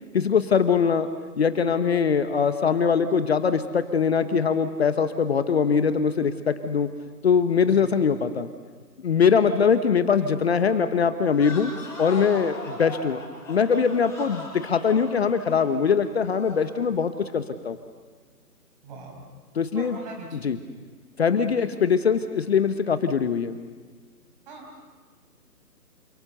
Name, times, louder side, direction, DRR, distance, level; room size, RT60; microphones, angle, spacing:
voice 1, 0.1-1.1 1.4-6.9 7.2-8.5 9.0-11.7 12.0-13.2 13.5-17.8 19.5-20.0 20.4-20.6 21.2-23.6, left 6 dB, 40° left, 11 dB, 1.0 m, -22 dB
sound 1, 11.3-16.7, left 2 dB, 5° left, 6.5 m, -39 dB
voice 2, 18.8-19.3 19.7-20.6 21.4-21.7 24.5-24.8, right 3 dB, 30° right, 2 dB, 5.6 m, -41 dB
28.5 x 26.5 x 6.9 m, 1.5 s
figure-of-eight pair, 140°, 47 cm